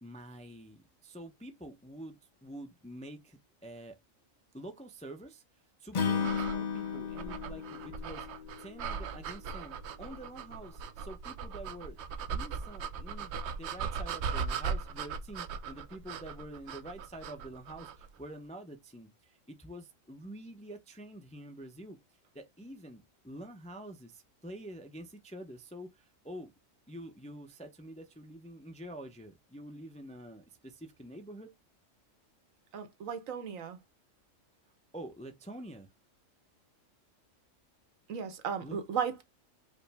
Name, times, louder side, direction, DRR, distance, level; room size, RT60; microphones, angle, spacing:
voice 1, 0.0-4.0 4.5-5.4 5.8-8.3 8.6-12.0 12.3-22.0 22.3-26.5 26.9-31.5 34.9-35.9 38.6-38.8, right 1 dB, 10° left, 0.3 m, -47 dB
Acoustic guitar / Strum, 5.9-9.2, left 6 dB, 45° left, 0.6 m, -34 dB
sound 1, 6.2-18.1, right 6 dB, 65° right, 0.8 m, -39 dB
voice 2, 32.7-33.8 38.1-39.2, right 7 dB, 85° right, 1.3 m, -35 dB
5.0 x 2.1 x 3.3 m
omnidirectional pair, 1.3 m